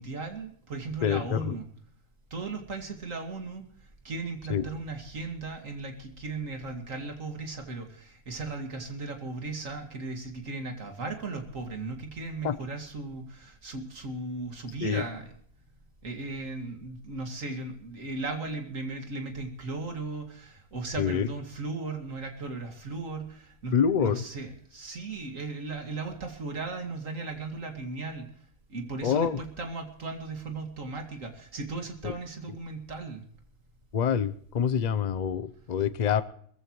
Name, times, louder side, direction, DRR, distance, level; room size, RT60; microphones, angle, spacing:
voice 1, 0.0-1.7 2.3-15.3 16.0-28.3 28.7-33.2, right 3 dB, 70° right, 4 dB, 2.6 m, -37 dB
voice 2, 1.0-1.5 4.5-4.7 12.4-12.6 14.8-15.0 21.0-21.3 23.7-24.2 29.0-29.4 32.0-32.1 33.9-36.2, left 7 dB, 40° left, 13 dB, 0.7 m, -26 dB
22.5 x 14.5 x 3.1 m, 0.62 s
omnidirectional pair, 1.4 m